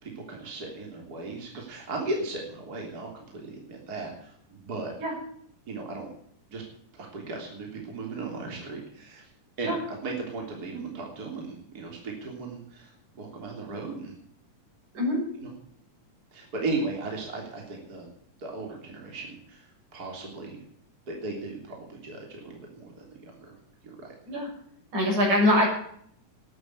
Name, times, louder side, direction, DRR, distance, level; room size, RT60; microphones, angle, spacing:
voice 1, 0.0-4.9 5.7-6.1 6.5-6.6 6.9-9.3 9.6-9.8 10.0-14.1 15.4-15.5 16.3-18.1 18.4-20.6 21.1-23.6 23.8-24.1, right 3 dB, 30° right, 0 dB, 3.5 m, -36 dB
voice 2, 24.9-25.7, left 1 dB, 65° right, -1 dB, 7.8 m, -23 dB
13.0 x 11.0 x 7.9 m, 0.64 s
omnidirectional pair, 3.6 m